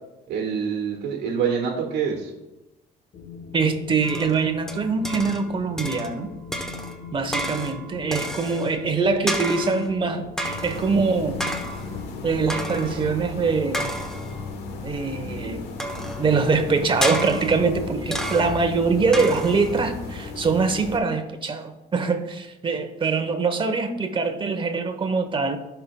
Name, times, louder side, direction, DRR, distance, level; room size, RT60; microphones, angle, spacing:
voice 1, 0.3-2.3, right 6 dB, 85° right, 1 dB, 1.5 m, -26 dB
Wind, 3.1-13.1, left 5 dB, 45° left, 0.7 m, -40 dB
voice 2, 3.5-6.3 7.1-11.4 12.2-13.9 14.8-15.7 16.2-25.6, right 4 dB, 30° right, 8 dB, 1.0 m, -23 dB
sound 1, 4.0-5.5 5.8-6.2 6.5-8.8 9.3-9.9 10.4-10.9 11.4-12.0 12.5-13.1 13.7-14.4 15.8-16.3 17.0-17.7 18.1-18.7 19.1-19.8, right 1 dB, 5° left, 1.0 m, -31 dB
sound 2, 10.4-21.0, left 4 dB, 80° left, 1.2 m, -35 dB
16.0 x 5.7 x 2.3 m, 1.0 s
cardioid pair, 110°, 17 cm